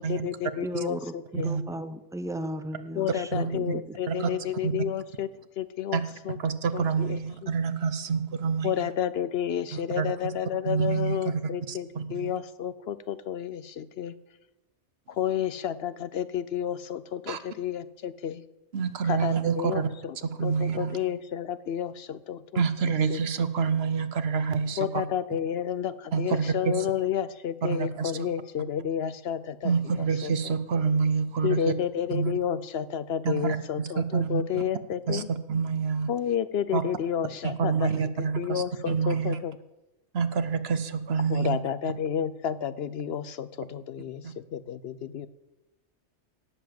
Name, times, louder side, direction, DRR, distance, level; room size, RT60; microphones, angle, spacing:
voice 1, 0.1-1.5 3.0-5.3 5.6-6.0 6.3-6.4 6.7-7.2 8.6-14.1 15.2-18.4 19.1-20.1 20.4-22.6 22.9-23.2 24.8-29.7 30.2-30.3 31.4-35.3 36.1-37.9 38.4-39.5 41.3-45.3, left 9 dB, 65° left, 14 dB, 0.8 m, -31 dB
voice 2, 0.6-1.1 1.4-3.8, right 1 dB, 5° right, 10 dB, 0.6 m, -35 dB
voice 3, 3.3-3.7 4.1-4.3 4.6-4.7 5.9-8.9 9.7-10.3 10.6-11.4 11.7-12.3 17.3-17.4 18.7-19.9 20.2-20.9 22.5-25.0 26.1-26.9 27.6-28.3 29.6-31.7 32.1-32.3 33.2-34.6 35.1-36.1 36.7-36.8 37.4-39.4 40.1-41.6 44.2-44.3, right 5 dB, 60° right, 11 dB, 1.1 m, -27 dB
18.0 x 7.2 x 7.7 m, 1.0 s
omnidirectional pair, 1.2 m